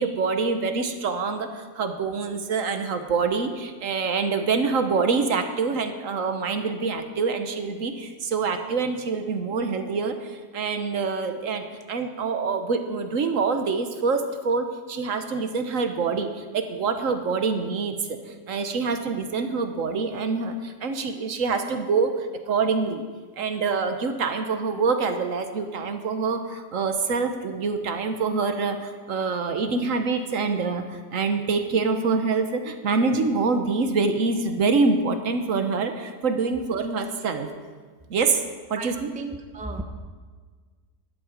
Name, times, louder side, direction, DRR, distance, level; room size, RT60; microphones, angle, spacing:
voice 1, 0.0-17.9 18.3-23.0 23.4-37.5 38.1-38.4 38.7-39.1, right 4 dB, 65° right, 7 dB, 1.3 m, -25 dB
voice 2, 38.7-39.8, right 2 dB, 5° right, 5 dB, 0.6 m, -35 dB
13.0 x 11.0 x 5.1 m, 1.5 s
omnidirectional pair, 1.5 m